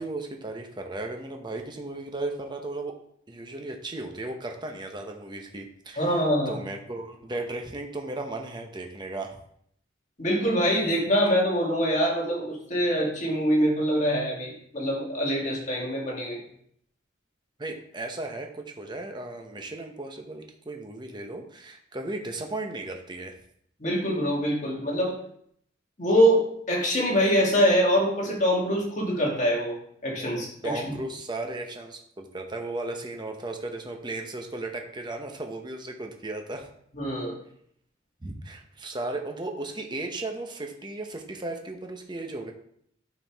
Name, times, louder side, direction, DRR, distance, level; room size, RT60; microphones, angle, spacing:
voice 1, 0.0-2.9 3.3-9.4 17.6-23.3 30.6-36.7 38.2-42.5, right 2 dB, 25° right, 3 dB, 0.8 m, -35 dB
voice 2, 6.0-6.6 10.2-16.4 23.8-25.2 26.0-29.7 30.0-30.7 36.9-37.3, equal, 40° left, -2 dB, 1.9 m, -24 dB
9.0 x 4.7 x 3.5 m, 0.67 s
head